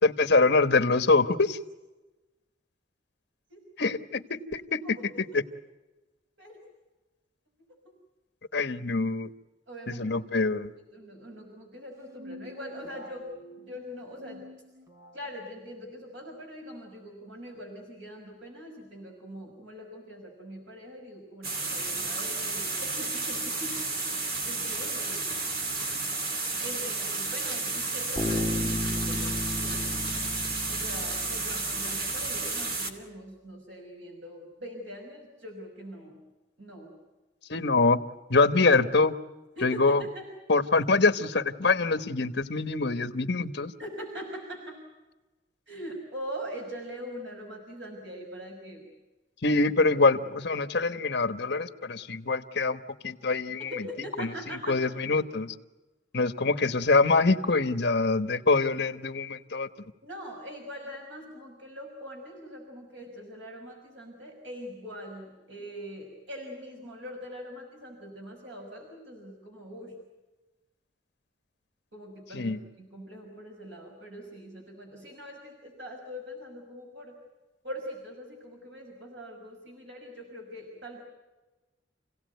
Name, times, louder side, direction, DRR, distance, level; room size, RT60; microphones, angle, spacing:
voice 1, 0.0-1.6 3.8-5.0 8.5-9.3 9.9-10.7 37.5-38.0 38.3-39.2 39.6-40.0 40.5-43.7 49.4-53.7 54.2-54.3 54.7-55.5 56.1-59.7 72.3-72.6, left 3 dB, 65° left, 10 dB, 1.3 m, -24 dB
voice 2, 9.7-10.1 10.9-13.3 13.6-14.4 15.1-23.8 24.4-25.8 26.6-30.1 30.7-36.2 36.6-36.9 39.6-40.3 43.8-44.8 45.7-48.9 53.6-54.8 60.0-70.0 71.9-77.2 77.6-81.0, equal, 80° right, 1 dB, 5.8 m, -42 dB
sound 1, 11.9-15.3, equal, 20° right, 2.8 m, -48 dB
sound 2, 21.4-32.9, right 3 dB, 55° right, 2.7 m, -32 dB
Bass guitar, 28.2-31.9, left 1 dB, 5° left, 3.2 m, -33 dB
29.0 x 17.5 x 9.4 m, 1.1 s
head